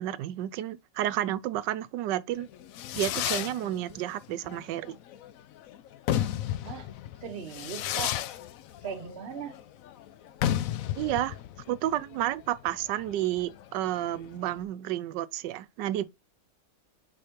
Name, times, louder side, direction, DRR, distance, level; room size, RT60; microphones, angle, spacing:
voice 1, 0.0-2.5 2.9-5.0 11.0-11.3 11.7-16.0, right 13 dB, 80° right, 1.2 m, -31 dB
Fireworks, 2.4-14.6, left 11 dB, 75° left, 0.7 m, -34 dB
voice 2, 7.2-8.2 8.8-9.6, right 7 dB, 45° right, 1.0 m, -38 dB
5.0 x 4.3 x 4.4 m
omnidirectional pair, 1.9 m